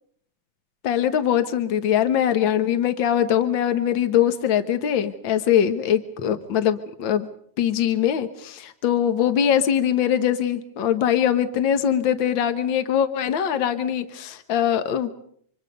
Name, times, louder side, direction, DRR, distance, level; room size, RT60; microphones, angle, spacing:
voice 1, 0.8-7.3 7.6-15.1, left 9 dB, 65° left, 9 dB, 1.1 m, -22 dB
29.5 x 26.0 x 5.3 m, 0.64 s
omnidirectional pair, 3.8 m